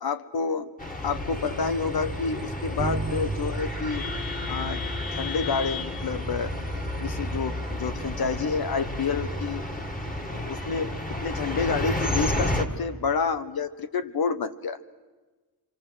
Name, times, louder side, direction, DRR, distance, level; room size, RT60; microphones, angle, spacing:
voice 1, 0.0-0.7 1.0-4.0 4.5-6.5 7.0-9.6 10.2-14.8, left 5 dB, 85° left, 11 dB, 1.2 m, -29 dB
sound 1, 0.8-12.6, left 1 dB, 25° left, 1.9 m, -31 dB
Bass guitar, 2.8-12.4, right 3 dB, 20° right, 1.2 m, -39 dB
26.5 x 24.0 x 8.0 m, 1.3 s
wide cardioid pair, 170°, 36 cm